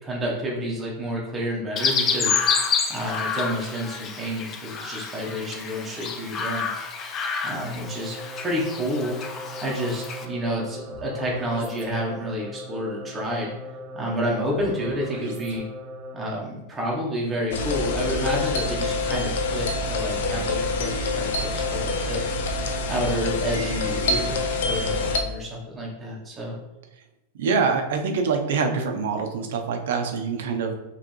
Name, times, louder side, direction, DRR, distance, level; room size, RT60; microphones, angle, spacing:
voice 1, 0.0-2.4 2.9-6.7 7.4-9.2 9.6-13.5 13.9-15.6 16.1-22.2 22.9-26.5, equal, 10° right, -3 dB, 0.9 m, -29 dB
Chirp tweet, 1.8-10.3, left 5 dB, 25° left, 0.4 m, -28 dB
sound 1, 7.7-16.5, left 1 dB, 55° right, 0.9 m, -39 dB
sound 2, 17.5-25.2, left 2 dB, 80° left, 0.6 m, -26 dB
voice 2, 27.3-30.7, right 5 dB, 75° right, 5 dB, 0.6 m, -25 dB
5.0 x 3.1 x 3.1 m, 0.98 s
supercardioid pair, 165°, 0 cm